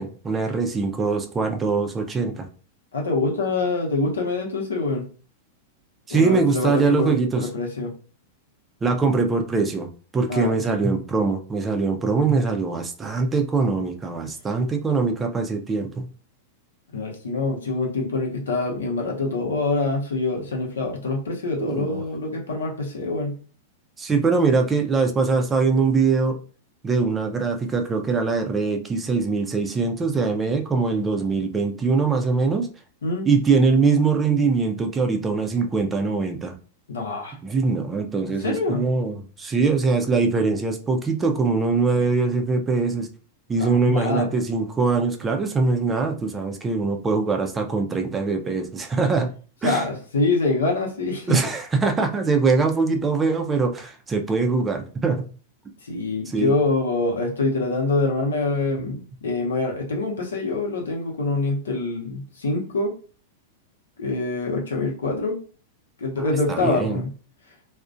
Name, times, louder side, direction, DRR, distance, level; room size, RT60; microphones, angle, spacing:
voice 1, 0.0-2.5 6.1-7.5 8.8-16.1 21.6-22.1 24.0-26.4 26.8-32.7 33.3-36.6 37.4-43.1 43.5-49.3 49.6-49.8 51.3-55.3 56.3-56.5 66.2-67.0, right 4 dB, 20° right, 4 dB, 0.4 m, -22 dB
voice 2, 2.9-5.1 6.1-7.9 10.3-10.5 16.9-23.4 33.0-33.3 36.9-37.4 38.4-38.8 43.6-44.3 49.6-51.4 55.8-62.9 64.0-65.4 66.0-67.1, left 3 dB, 85° left, 0 dB, 0.7 m, -25 dB
2.4 x 2.1 x 2.5 m, 0.39 s
hypercardioid pair, 115°, 0 cm